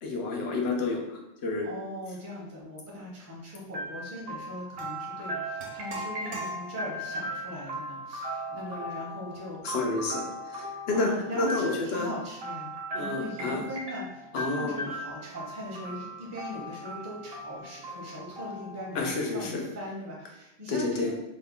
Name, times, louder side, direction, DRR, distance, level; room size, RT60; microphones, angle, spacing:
voice 1, 0.0-1.7 9.6-10.2 10.5-11.1 11.3-12.1 12.9-13.7 14.3-14.9 18.9-19.6 20.7-21.1, left 3 dB, 70° left, 0 dB, 0.9 m, -30 dB
voice 2, 1.6-9.6 10.9-12.7 13.0-21.1, equal, 20° right, -4 dB, 0.6 m, -40 dB
sound 1, 3.7-19.5, right 1 dB, 65° right, 0.9 m, -38 dB
sound 2, 4.8-4.9 5.6-7.1, right 1 dB, 90° right, 1.0 m, -39 dB
2.9 x 2.1 x 3.6 m, 0.89 s
omnidirectional pair, 1.1 m